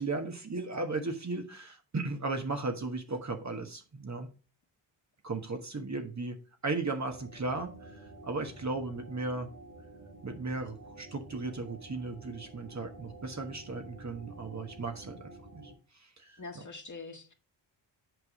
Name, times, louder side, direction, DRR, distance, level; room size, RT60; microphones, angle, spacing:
voice 1, 0.0-4.3 5.2-6.4 6.6-7.7 8.2-9.5 10.2-15.6 16.2-16.6, right 3 dB, 35° right, 1.4 m, -36 dB
sound 1, 7.1-15.7, right 2 dB, 90° right, 4.9 m, -50 dB
voice 2, 16.4-17.3, left 3 dB, 40° left, 1.9 m, -44 dB
8.2 x 4.8 x 4.8 m
cardioid pair, 50°, 47 cm